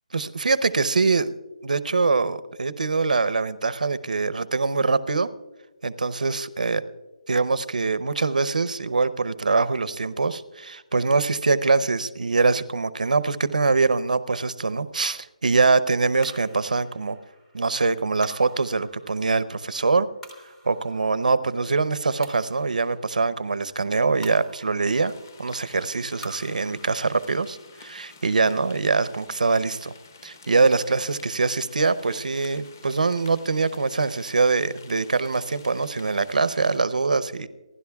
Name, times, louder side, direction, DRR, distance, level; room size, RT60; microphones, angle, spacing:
voice 1, 0.1-1.3 1.6-5.3 5.8-6.8 7.3-17.2 17.5-20.1 20.7-25.1 25.4-29.9 30.2-37.5, right 4 dB, 90° right, 16 dB, 0.8 m, -23 dB
sound 1, 16.2-30.7, right 1 dB, 5° left, 0.6 m, -50 dB
sound 2, 25.0-36.8, left 4 dB, 25° left, 1.0 m, -50 dB
29.0 x 11.5 x 2.3 m, 1.1 s
hypercardioid pair, 180°, 4 cm